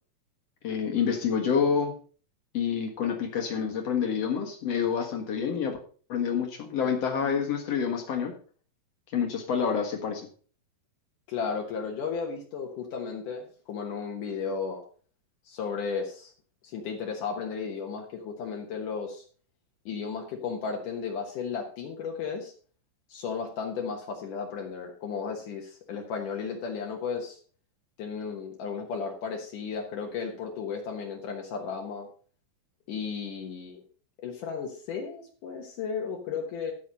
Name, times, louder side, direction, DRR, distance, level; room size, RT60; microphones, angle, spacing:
voice 1, 0.6-1.9 2.5-5.8 6.1-8.3 9.1-10.2, left 7 dB, 50° left, 4 dB, 2.4 m, -27 dB
voice 2, 11.3-14.8 15.5-16.3 16.6-19.2 19.9-22.5 23.1-27.4 28.0-32.1 32.9-33.8 34.2-36.7, left 5 dB, 65° left, 2 dB, 2.7 m, -34 dB
13.5 x 6.3 x 5.3 m, 0.42 s
omnidirectional pair, 4.2 m